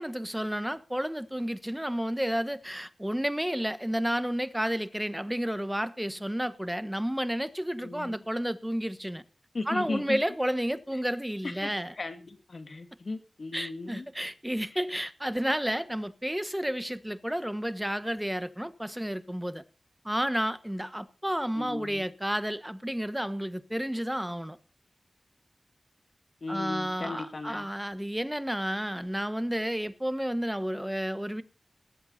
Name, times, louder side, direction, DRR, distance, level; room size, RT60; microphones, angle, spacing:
voice 1, 0.0-9.2 9.7-11.9 13.5-19.6 20.0-24.6 26.5-31.4, equal, 5° right, 1.2 m, -31 dB
voice 2, 7.8-8.2 9.5-10.2 11.4-14.0 21.5-22.1 26.4-27.7, left 3 dB, 60° left, 2.3 m, -36 dB
19.5 x 8.0 x 4.2 m
cardioid pair, 50°, 0 cm